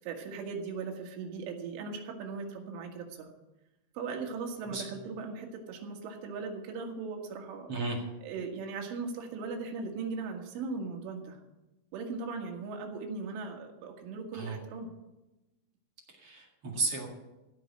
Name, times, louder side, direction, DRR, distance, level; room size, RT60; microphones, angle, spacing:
voice 1, 0.0-3.3 4.0-7.7 8.2-11.4 11.9-14.9, right 4 dB, 85° right, 2 dB, 4.2 m, -38 dB
voice 2, 4.7-5.0 7.7-8.0 14.3-14.6 16.2-17.1, right 3 dB, 50° right, 0 dB, 1.9 m, -34 dB
16.0 x 6.4 x 8.6 m, 1.0 s
omnidirectional pair, 5.5 m